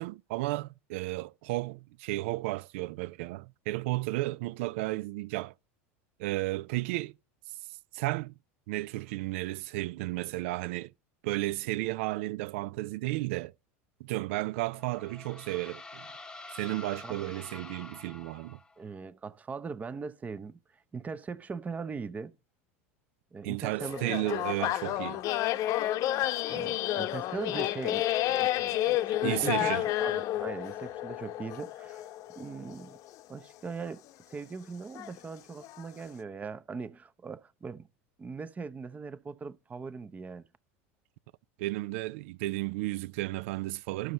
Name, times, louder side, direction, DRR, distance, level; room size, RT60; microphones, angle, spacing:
voice 1, 0.0-5.5 6.2-7.1 7.9-8.3 8.7-10.9 11.2-13.5 14.0-16.1 16.5-18.6 23.4-25.2 29.2-29.9 41.6-44.1, right 19 dB, 70° right, 0.4 m, -33 dB
sound 1, 14.5-18.9, left 2 dB, 10° left, 0.9 m, -47 dB
voice 2, 18.8-20.6 20.9-22.3 23.3-24.7 26.5-28.5 28.8-32.1 32.3-33.0 33.3-34.0 34.3-37.9 38.2-40.4, right 5 dB, 20° right, 0.7 m, -40 dB
sound 2, 23.8-33.1 33.8-33.9 35.0-35.2 35.6-35.8, left 14 dB, 50° left, 0.8 m, -30 dB
12.5 x 6.4 x 4.0 m
hypercardioid pair, 100°, 7 cm